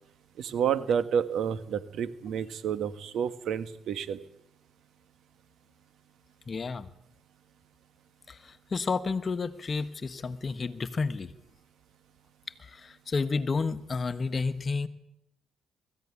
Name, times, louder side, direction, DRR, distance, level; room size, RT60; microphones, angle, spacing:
voice 1, 0.4-4.2, right 8 dB, 75° right, 12 dB, 1.6 m, -29 dB
voice 2, 6.5-6.9 8.3-11.3 12.6-14.9, left 4 dB, 40° left, 12 dB, 1.4 m, -31 dB
21.0 x 15.0 x 9.9 m, 0.84 s
cardioid pair, 90°, 0 cm